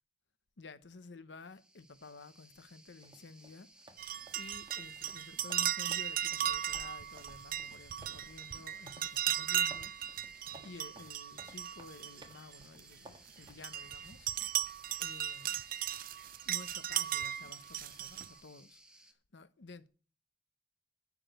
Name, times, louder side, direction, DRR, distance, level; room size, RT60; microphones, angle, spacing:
voice 1, 0.6-3.7 4.3-14.3 15.0-15.6 16.4-19.9, left 3 dB, 90° left, 0.9 m, -52 dB
sound 1, 1.4-19.1, right 1 dB, 5° right, 1.2 m, -61 dB
sound 2, 3.0-13.6, right 2 dB, 25° right, 1.4 m, -58 dB
sound 3, 4.0-12.8 13.3-18.3, right 11 dB, 50° right, 0.4 m, -37 dB
12.0 x 5.1 x 7.8 m
head